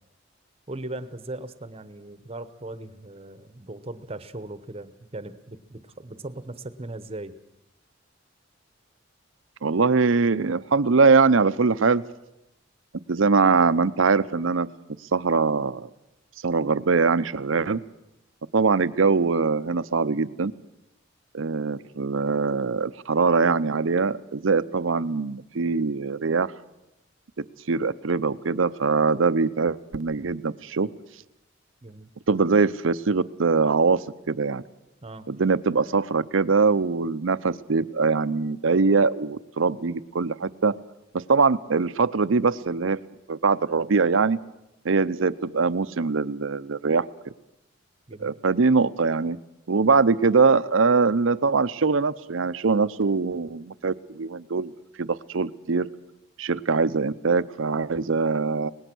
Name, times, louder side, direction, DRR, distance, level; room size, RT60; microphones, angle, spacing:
voice 1, 0.7-7.3 31.8-32.1 35.0-35.3 48.1-48.4, right 2 dB, 30° right, 13 dB, 1.0 m, -38 dB
voice 2, 9.6-12.0 13.1-14.7 15.1-15.9 16.4-17.8 18.5-20.5 21.3-26.5 27.7-30.9 32.3-34.6 35.3-40.8 41.1-43.0 43.3-44.4 44.8-47.1 48.2-49.4 49.7-54.7 55.0-55.9 56.4-58.7, right 4 dB, 75° right, 14 dB, 0.7 m, -22 dB
24.5 x 19.5 x 6.2 m, 0.91 s
head